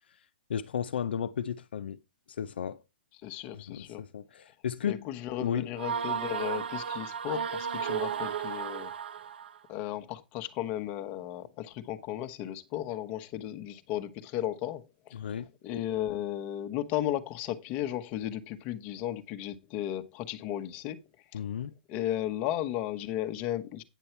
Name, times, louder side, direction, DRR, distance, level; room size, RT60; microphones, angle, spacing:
voice 1, 0.5-2.0 2.4-2.8 3.5-5.1 5.3-5.7 15.1-15.5 21.3-21.7, left 8 dB, 80° left, 0.8 m, -34 dB
voice 2, 3.2-4.0 4.9-8.9 9.7-15.2 15.6-21.0 21.3-21.4 21.9-23.8, left 12 dB, 25° left, 1.0 m, -35 dB
sound 1, 5.8-9.6, right 7 dB, 80° right, 1.0 m, -34 dB
9.2 x 7.1 x 4.4 m
hypercardioid pair, 160°, 5 cm